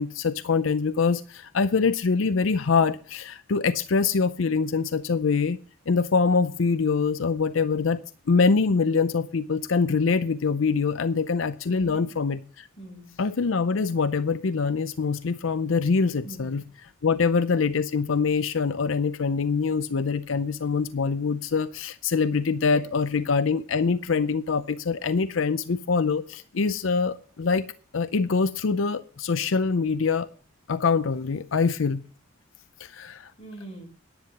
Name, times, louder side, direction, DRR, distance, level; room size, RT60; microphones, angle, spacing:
voice 1, 0.0-5.6 5.9-8.0 8.3-12.4 13.2-27.6 27.9-30.3 30.7-32.0 32.8-33.3, left 5 dB, 80° left, 12 dB, 0.6 m, -24 dB
voice 2, 11.7-12.1 12.8-13.1 16.2-16.6 17.0-17.3 22.6-22.9 33.4-33.9, right 1 dB, 30° left, -2 dB, 7.2 m, -42 dB
10.5 x 9.5 x 5.9 m, 0.39 s
head